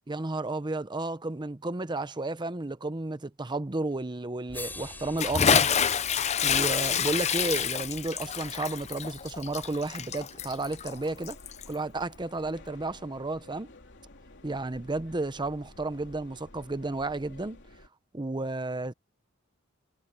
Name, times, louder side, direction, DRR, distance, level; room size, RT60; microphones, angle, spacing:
voice 1, 0.1-5.7 6.4-11.4 11.7-13.7 14.4-17.6 18.1-18.9, right 2 dB, 20° right, 0.8 m, -32 dB
sound 1, 3.9-4.0 4.5-8.7 10.1-10.2, left 3 dB, 10° left, 4.0 m, -47 dB
sound 2, 4.5-17.9, left 1 dB, 60° left, 3.2 m, -51 dB
Bathtub (filling or washing) / Splash splatter, 5.2-11.7, left 7 dB, 35° left, 0.6 m, -27 dB
head